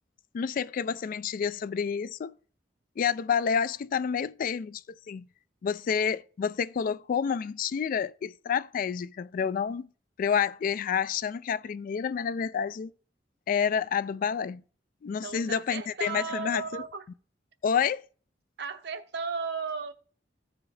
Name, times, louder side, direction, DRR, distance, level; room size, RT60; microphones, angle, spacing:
voice 1, 0.3-2.3 3.0-5.3 5.6-9.9 10.2-12.9 13.5-14.6 15.0-16.8 17.6-18.0, left 7 dB, 50° left, 0.3 m, -29 dB
voice 2, 15.2-17.0 18.6-19.9, right 5 dB, 70° right, 0.8 m, -35 dB
14.5 x 4.9 x 3.2 m
head